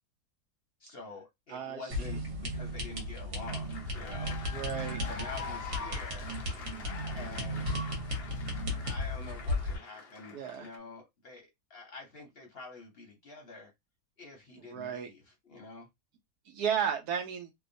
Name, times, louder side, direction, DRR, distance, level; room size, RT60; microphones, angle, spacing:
voice 1, 0.8-4.4 5.0-6.4 7.1-7.7 8.8-13.7 14.2-15.9, left 3 dB, 50° left, 0.7 m, -47 dB
voice 2, 1.5-1.8 4.5-5.0 10.3-10.7 14.7-15.1 16.5-17.5, right 8 dB, 75° right, 1.1 m, -33 dB
sound 1, 1.9-9.8, left 1 dB, 55° right, 1.3 m, -35 dB
sound 2, 2.7-10.8, left 4 dB, 85° left, 0.5 m, -45 dB
2.9 x 2.1 x 2.5 m
omnidirectional pair, 1.7 m